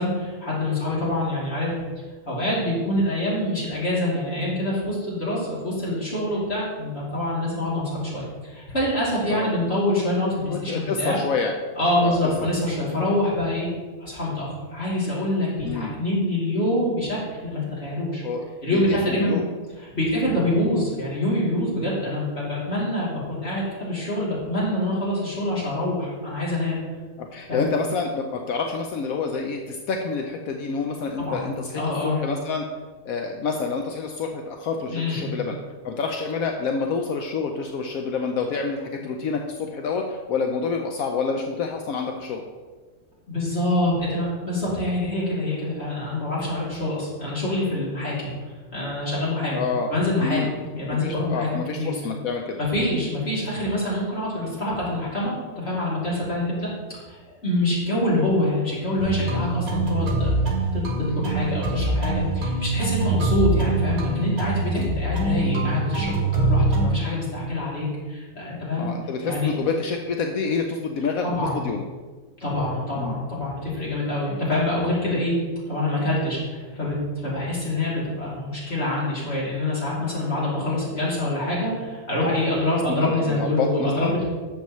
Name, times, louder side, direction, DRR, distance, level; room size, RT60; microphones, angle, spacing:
voice 1, 0.0-1.7 2.3-11.2 11.8-13.7 14.0-18.2 18.6-19.4 19.8-26.8 27.5-27.7 31.2-31.4 31.7-32.2 34.9-35.3 43.3-48.3 48.7-49.6 49.9-50.4 50.7-51.5 51.8-51.9 52.6-56.7 57.1-60.3 60.7-60.8 61.1-68.9 69.2-69.5 71.2-71.6 72.4-75.3 75.7-84.2, left 1 dB, 45° left, -7 dB, 3.1 m, -25 dB
voice 2, 10.5-11.5 12.0-12.2 15.6-15.9 18.2-18.4 18.7-19.5 27.2-32.6 33.1-35.6 35.8-42.4 49.5-49.9 50.2-50.5 50.9-52.6 64.8-64.9 68.8-71.8 73.0-73.2 83.0-84.1, left 4 dB, 70° left, 3 dB, 1.1 m, -28 dB
sound 1, 59.0-66.9, right 2 dB, 75° right, 2.0 m, -24 dB
11.5 x 7.0 x 3.1 m, 1.4 s
omnidirectional pair, 1.6 m